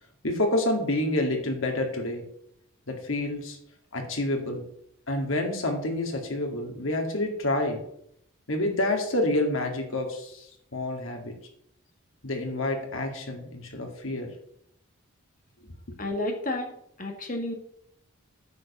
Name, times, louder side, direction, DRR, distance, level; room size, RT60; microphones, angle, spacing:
voice 1, 0.2-2.2 2.9-3.6 3.9-4.6 5.1-7.8 8.5-10.5 10.7-11.3 12.2-14.3, left 1 dB, 70° left, 3 dB, 2.2 m, -28 dB
voice 2, 16.0-16.7 17.0-17.5, left 1 dB, 40° left, 3 dB, 1.8 m, -30 dB
9.4 x 5.2 x 7.2 m, 0.72 s
head